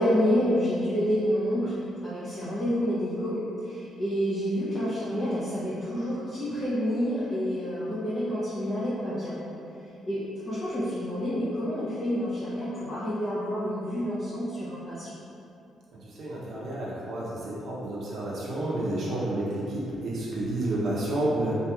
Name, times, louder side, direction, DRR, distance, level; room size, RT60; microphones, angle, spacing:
voice 1, 0.0-1.8 2.0-9.4 10.1-15.2, equal, 30° left, -11 dB, 0.5 m, -28 dB
voice 2, 16.0-21.5, right 1 dB, 55° right, -6 dB, 0.5 m, -30 dB
2.8 x 2.5 x 2.2 m, 2.7 s
cardioid pair, 90°, 0 cm